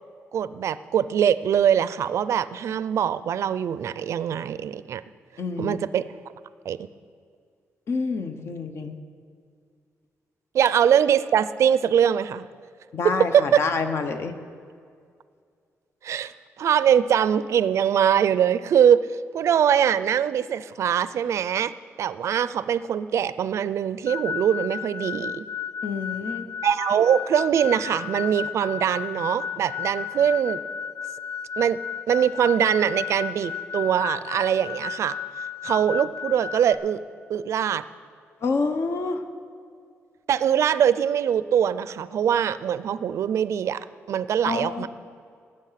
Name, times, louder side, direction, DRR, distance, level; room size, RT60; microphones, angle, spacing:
voice 1, 0.3-5.0 5.6-6.0 6.6-6.9 10.5-12.5 13.0-13.6 16.0-16.3 16.6-19.1 19.3-21.7 22.0-25.4 26.6-30.6 31.6-31.8 32.1-35.1 35.6-37.0 37.3-37.8 40.3-44.9, right 9 dB, 65° right, 15 dB, 0.5 m, -22 dB
voice 2, 5.4-5.8 7.9-8.9 12.9-14.3 25.8-26.5 38.4-39.2 44.4-44.9, left 4 dB, 55° left, 7 dB, 1.1 m, -27 dB
sound 1, 24.1-36.7, left 7 dB, 75° left, 1.0 m, -33 dB
19.0 x 7.9 x 5.8 m, 2.2 s
cardioid pair, 125°, 5 cm